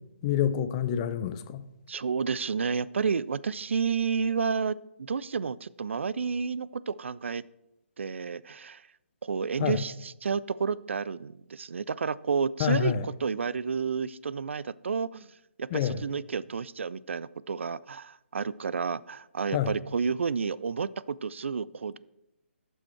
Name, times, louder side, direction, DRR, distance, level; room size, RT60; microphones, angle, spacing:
voice 1, 0.2-1.6 9.6-9.8 12.6-13.1 15.7-16.0 19.5-19.7, left 10 dB, 30° left, 0.5 m, -27 dB
voice 2, 1.9-7.4 8.0-8.8 9.2-15.3 15.6-22.0, right 5 dB, 70° right, 0.4 m, -31 dB
12.0 x 6.3 x 4.4 m
figure-of-eight pair, 140°, 7 cm